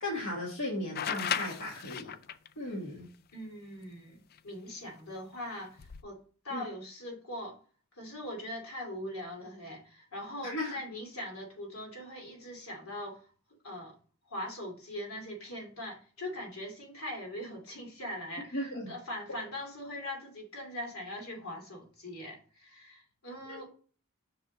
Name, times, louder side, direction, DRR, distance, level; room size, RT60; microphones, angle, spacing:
voice 1, 0.0-2.1 2.6-3.1 6.5-6.6 10.4-10.7 18.5-18.9 19.3-19.4 23.5-23.6, left 1 dB, 60° left, 1.7 m, -36 dB
sound 1, 1.0-2.5 4.4-4.5 5.7-6.0, left 8 dB, 45° left, 0.4 m, -35 dB
voice 2, 3.3-6.2 6.4-7.6 7.9-13.2 13.6-13.9 14.3-23.7, left 1 dB, 80° left, 2.6 m, -41 dB
6.3 x 4.8 x 4.0 m
head